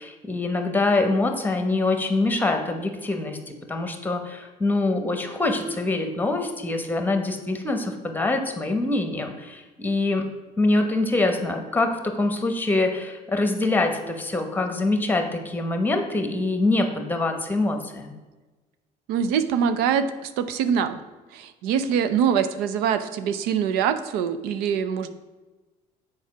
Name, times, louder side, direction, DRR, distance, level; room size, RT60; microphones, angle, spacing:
voice 1, 0.0-10.2 10.6-18.1, left 2 dB, 10° left, 5 dB, 1.1 m, -24 dB
voice 2, 19.1-21.0 21.3-25.1, right 7 dB, 90° right, 10 dB, 0.6 m, -24 dB
7.2 x 4.8 x 6.0 m, 1.2 s
cardioid pair, 120°, 15 cm